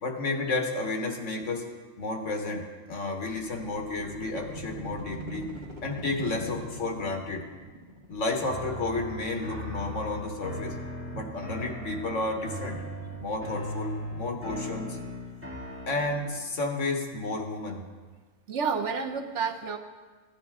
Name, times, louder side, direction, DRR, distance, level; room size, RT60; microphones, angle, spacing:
voice 1, 0.0-1.6 2.0-5.5 5.8-7.4 8.1-10.8 11.1-12.8 13.2-15.0 15.9-17.8, left 2 dB, 65° left, 2 dB, 1.7 m, -31 dB
sound 1, 3.3-15.0, right 1 dB, 35° right, 1.6 m, -44 dB
sound 2, 8.4-16.5, equal, 10° right, 2.5 m, -38 dB
voice 2, 18.5-19.8, right 5 dB, 65° right, 5 dB, 1.0 m, -30 dB
16.0 x 10.0 x 3.6 m, 1.4 s
omnidirectional pair, 1.4 m